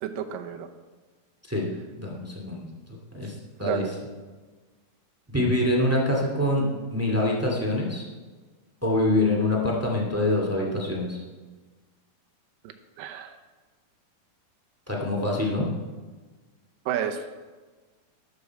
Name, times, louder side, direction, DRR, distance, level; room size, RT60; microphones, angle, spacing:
voice 1, 0.0-0.7 3.6-3.9 13.0-13.3 16.9-17.2, right 9 dB, 75° right, 5 dB, 2.4 m, -30 dB
voice 2, 2.0-2.7 3.1-3.8 5.3-8.0 8.8-11.2 14.9-15.7, left 1 dB, 5° right, -2 dB, 1.1 m, -25 dB
13.0 x 11.5 x 4.7 m, 1.3 s
omnidirectional pair, 4.3 m